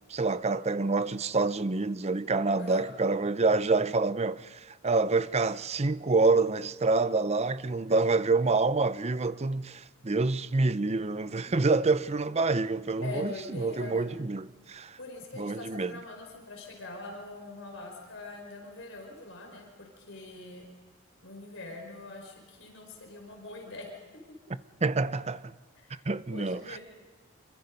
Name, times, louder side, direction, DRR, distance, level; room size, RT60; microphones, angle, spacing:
voice 1, 0.1-15.0 15.3-16.0 24.8-25.5 26.1-26.8, right 3 dB, 30° right, 0.6 m, -27 dB
voice 2, 13.0-14.0 15.0-20.6 21.2-23.9 25.8-26.0 26.3-26.8, left 2 dB, 65° left, 5.4 m, -43 dB
27.0 x 24.0 x 5.3 m
head